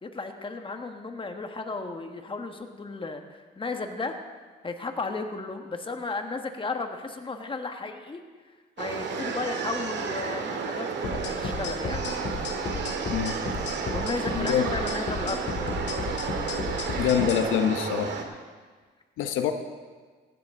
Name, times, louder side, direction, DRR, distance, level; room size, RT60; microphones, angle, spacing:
voice 1, 0.0-4.2 4.6-8.2 8.8-12.0 13.9-16.0, left 3 dB, 25° left, 5 dB, 1.4 m, -34 dB
sound 1, 8.8-18.2, right 5 dB, 65° right, 1.8 m, -32 dB
sound 2, 11.0-17.4, left 3 dB, 60° left, 2.2 m, -33 dB
voice 2, 13.1-13.4 14.3-14.7 17.0-18.1 19.2-19.5, left 8 dB, 90° left, 7 dB, 0.9 m, -25 dB
17.0 x 12.0 x 3.7 m, 1.5 s
cardioid pair, 90°, 20 cm